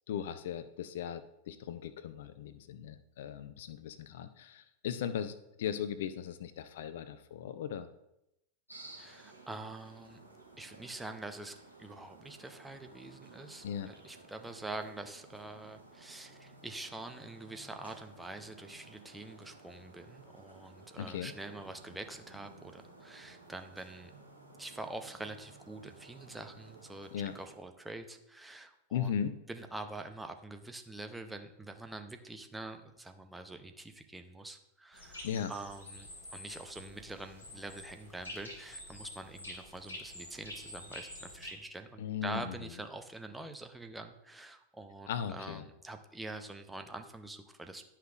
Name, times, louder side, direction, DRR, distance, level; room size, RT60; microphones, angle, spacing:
voice 1, 0.1-7.9 13.6-13.9 21.0-21.3 27.1-27.3 28.9-29.4 35.2-35.5 42.0-42.5 45.1-45.6, left 8 dB, 55° left, 12 dB, 0.5 m, -37 dB
sound 1, 8.7-27.5, right 3 dB, 90° right, 2.0 m, -55 dB
voice 2, 9.0-10.2 10.6-24.1 24.6-29.1 29.5-47.8, right 2 dB, 5° right, 6 dB, 0.7 m, -45 dB
sound 2, 34.9-41.5, left 1 dB, 75° left, 2.2 m, -48 dB
11.0 x 5.7 x 2.5 m, 0.84 s
figure-of-eight pair, 90°, 0 cm